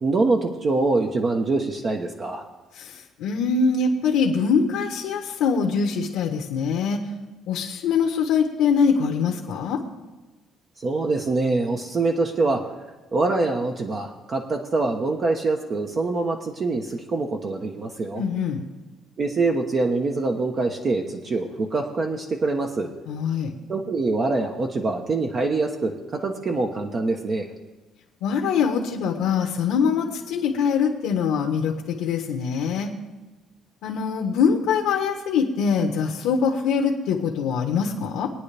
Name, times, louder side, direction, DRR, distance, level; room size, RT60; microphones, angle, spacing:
voice 1, 0.0-2.4 10.8-12.6 13.1-18.2 19.2-22.9 23.7-27.5, right 3 dB, 35° right, 2 dB, 1.0 m, -24 dB
voice 2, 2.7-7.0 7.5-9.8 18.1-18.7 23.1-23.5 28.2-32.9 33.8-38.3, left 6 dB, 85° left, 1 dB, 1.2 m, -23 dB
21.5 x 9.6 x 3.4 m, 1.2 s
cardioid pair, 130°, 0 cm